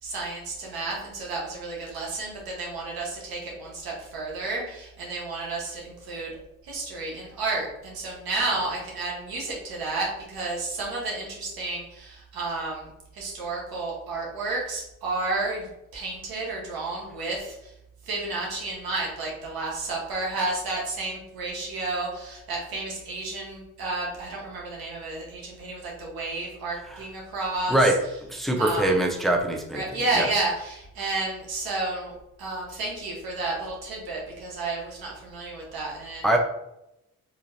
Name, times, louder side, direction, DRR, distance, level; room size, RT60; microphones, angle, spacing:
voice 1, 0.0-6.3 6.6-17.7 18.0-27.9 28.6-28.9 29.7-32.1 32.4-36.4, right 3 dB, 90° right, -3 dB, 1.3 m, -31 dB
voice 2, 28.3-30.3 36.2-36.4, right 1 dB, ahead, 2 dB, 0.7 m, -23 dB
3.8 x 3.0 x 2.6 m, 0.84 s
supercardioid pair, 50°, 35 cm